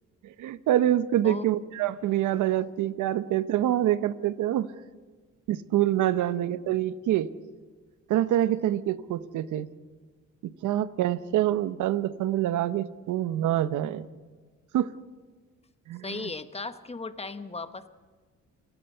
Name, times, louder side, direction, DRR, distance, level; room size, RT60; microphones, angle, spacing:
voice 1, 0.4-4.7 5.5-7.3 8.1-9.7 10.6-14.0 14.7-14.9 15.9-16.3, right 12 dB, 80° right, 14 dB, 0.9 m, -26 dB
voice 2, 16.0-17.9, left 3 dB, 20° left, 11 dB, 1.2 m, -36 dB
29.0 x 18.5 x 5.7 m, 1.4 s
cardioid pair, 90°, 30 cm